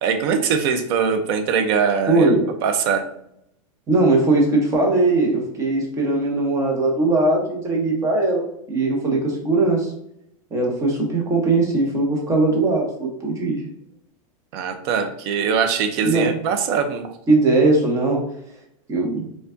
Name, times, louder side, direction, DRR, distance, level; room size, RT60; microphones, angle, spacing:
voice 1, 0.0-2.3 2.6-3.0 14.5-17.2, right 6 dB, 45° right, 7 dB, 0.6 m, -22 dB
voice 2, 2.1-2.5 3.9-9.9 10.5-13.6 16.0-16.3 17.3-18.2 18.9-19.2, right 2 dB, 15° right, -1 dB, 0.9 m, -19 dB
4.4 x 2.4 x 2.6 m, 0.73 s
supercardioid pair, 150°, 18 cm